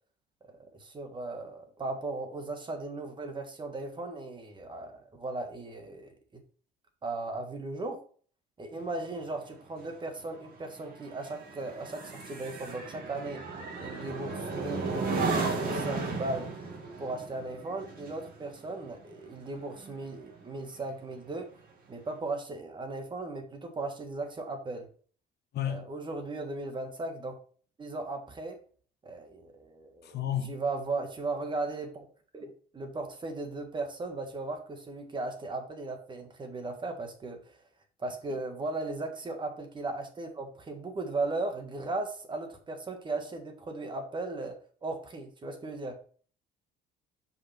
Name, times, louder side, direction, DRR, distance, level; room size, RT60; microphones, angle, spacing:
voice 1, 0.6-6.1 7.0-8.0 8.6-13.4 13.8-16.5 17.0-21.5 21.9-24.9 25.7-27.3 27.8-28.6 29.0-30.2 30.5-32.0 32.3-37.5 38.0-46.0, right 2 dB, 25° right, 1.5 m, -37 dB
sound 1, 8.7-20.4 20.8-21.1, right 4 dB, 50° right, 2.5 m, -35 dB
voice 2, 25.5-25.9 30.0-30.5, left 10 dB, 60° left, 1.3 m, -32 dB
6.0 x 5.4 x 5.8 m
cardioid pair, 140°, 19 cm